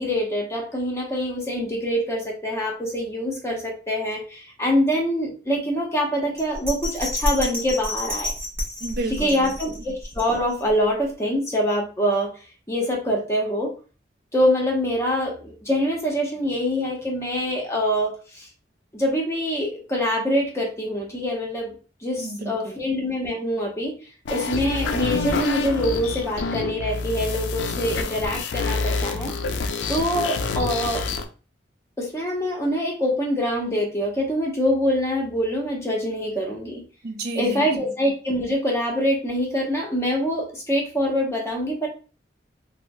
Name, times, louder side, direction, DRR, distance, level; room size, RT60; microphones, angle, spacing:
voice 1, 0.0-8.3 9.1-12.3 12.7-13.7 14.3-18.5 18.9-21.7 22.0-23.9 24.3-29.3 29.9-31.0 32.0-36.8 37.4-41.9, equal, 15° left, -1 dB, 0.7 m, -25 dB
Bell, 6.4-10.7 11.1-11.2, left 1 dB, 15° right, 0.6 m, -30 dB
voice 2, 8.8-9.7 22.2-22.7 37.0-37.7, right 2 dB, 55° right, 4 dB, 0.5 m, -32 dB
sound 1, 24.3-31.2, left 3 dB, 80° left, 0.4 m, -27 dB
3.4 x 2.0 x 2.6 m, 0.36 s
head